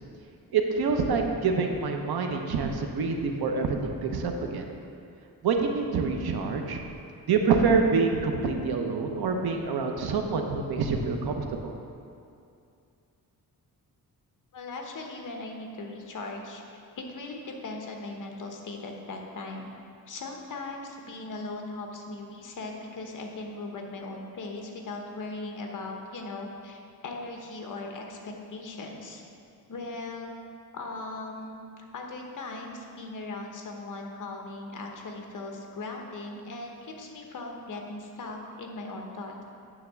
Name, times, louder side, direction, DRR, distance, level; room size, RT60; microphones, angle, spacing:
voice 1, 0.5-4.6 5.4-6.8 7.3-11.7, right 4 dB, 85° right, 4 dB, 0.9 m, -26 dB
voice 2, 14.5-19.7 20.1-29.2 29.7-30.4 30.7-39.4, left 2 dB, 55° left, 2 dB, 1.1 m, -39 dB
9.2 x 3.6 x 6.8 m, 2.5 s
wide cardioid pair, 140°, 37 cm